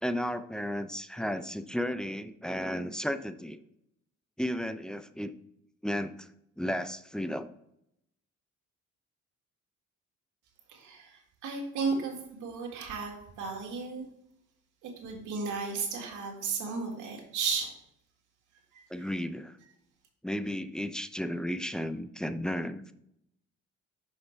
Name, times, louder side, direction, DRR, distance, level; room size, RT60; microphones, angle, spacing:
voice 1, 0.0-3.6 4.4-5.3 5.8-6.3 6.6-7.5 18.9-19.6 20.2-22.9, equal, ahead, 10 dB, 0.4 m, -33 dB
voice 2, 10.7-14.1 14.8-17.7 18.7-18.8, right 4 dB, 80° right, 0 dB, 1.9 m, -34 dB
6.0 x 5.6 x 3.3 m, 0.78 s
cardioid pair, 90°, 30 cm